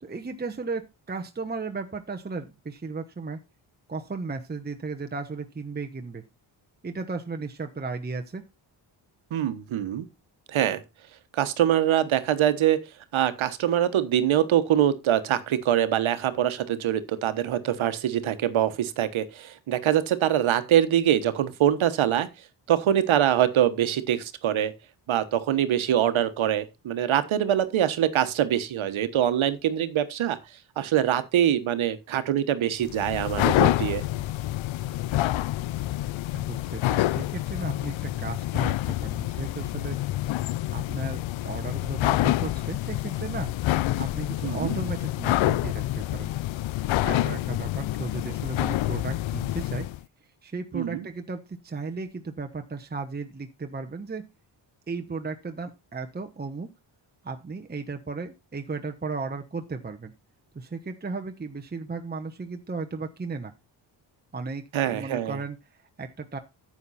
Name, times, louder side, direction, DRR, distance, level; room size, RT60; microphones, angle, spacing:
voice 1, 0.0-3.4 3.9-6.2 6.8-8.4 36.3-40.0 40.7-43.5 44.0-46.3 47.0-49.9 50.4-54.2 54.9-56.7 57.2-60.1 60.5-63.5 64.3-66.4, right 4 dB, 20° right, 1.0 m, -35 dB
voice 2, 9.3-10.1 10.5-10.8 11.3-12.8 13.1-22.3 22.7-24.7 25.1-30.4 30.8-34.0 44.4-44.7 50.7-51.0 64.7-65.4, right 11 dB, 80° right, 1.3 m, -24 dB
sound 1, 32.8-50.0, left 15 dB, 70° left, 0.6 m, -27 dB
9.8 x 7.3 x 4.2 m
cardioid pair, 75°, 47 cm